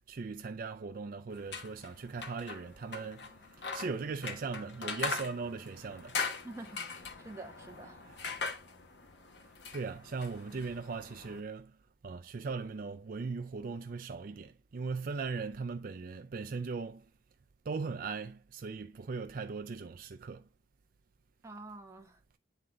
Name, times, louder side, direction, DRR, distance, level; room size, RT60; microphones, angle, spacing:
voice 1, 0.0-3.3 3.6-6.2 8.0-8.3 9.7-11.8 12.0-17.1 17.7-20.5, right 4 dB, 45° right, 0.4 m, -39 dB
sound 1, 1.3-11.4, left 4 dB, 60° left, 1.1 m, -41 dB
voice 2, 6.4-8.0 21.4-22.2, right 2 dB, 15° right, 1.1 m, -47 dB
9.3 x 3.8 x 3.6 m
head